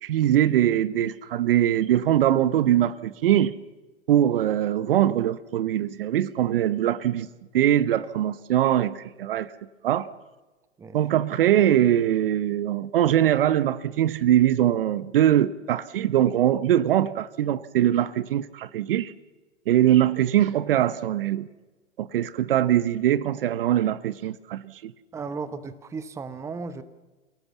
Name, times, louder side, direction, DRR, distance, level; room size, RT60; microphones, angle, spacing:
voice 1, 0.0-3.5 4.1-7.3 7.5-9.5 9.8-10.1 10.9-19.1 19.7-21.5 22.0-24.9, right 11 dB, 50° right, 0.9 m, -22 dB
voice 2, 25.1-26.8, right 4 dB, 10° right, 0.8 m, -35 dB
28.5 x 18.0 x 7.2 m
figure-of-eight pair, 115°, 37 cm